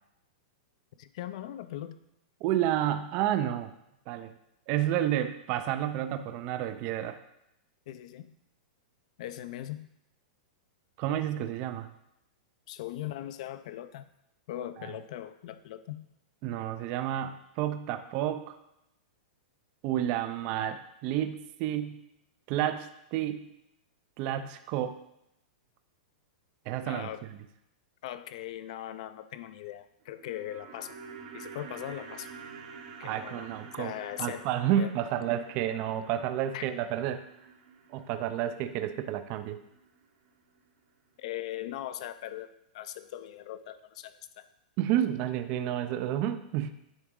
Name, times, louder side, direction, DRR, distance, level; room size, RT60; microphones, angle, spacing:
voice 1, 1.0-2.0 7.9-8.3 9.2-9.9 12.7-14.1 14.5-16.1 26.8-27.2 28.0-31.0 31.3-32.3 33.0-33.5 33.8-34.5 34.8-34.9 36.5-36.7 41.2-42.5 42.7-44.5, left 12 dB, 50° left, 13 dB, 0.4 m, -40 dB
voice 2, 2.4-3.7 4.1-4.3 4.7-7.2 11.0-11.9 14.8-14.9 16.4-18.6 19.8-22.0 22.5-23.5 24.2-25.0 26.7-27.1 33.0-33.9 34.2-37.2 37.9-39.6 44.8-46.7, right 11 dB, 30° right, 9 dB, 0.4 m, -30 dB
sound 1, 30.0-40.3 40.5-40.6, right 5 dB, 55° right, 1.0 m, -49 dB
9.9 x 3.8 x 3.7 m, 0.83 s
supercardioid pair, 170°, 5 cm